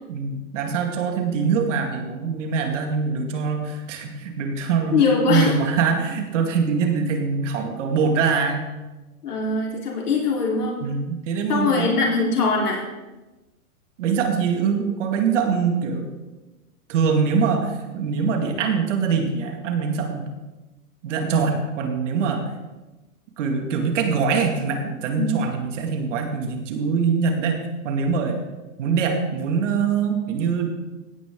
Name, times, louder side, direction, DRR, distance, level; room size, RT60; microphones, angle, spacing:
voice 1, 0.1-5.0 5.3-8.7 10.8-11.9 14.0-16.1 16.9-20.3 21.0-22.4 23.4-28.4 28.8-30.7, right 5 dB, 55° right, 4 dB, 2.4 m, -23 dB
voice 2, 4.9-5.5 9.2-10.8 11.5-12.8 25.2-25.3, left 4 dB, 85° left, -2 dB, 4.2 m, -21 dB
16.0 x 10.5 x 3.8 m, 1.1 s
hypercardioid pair, 140°, 45 cm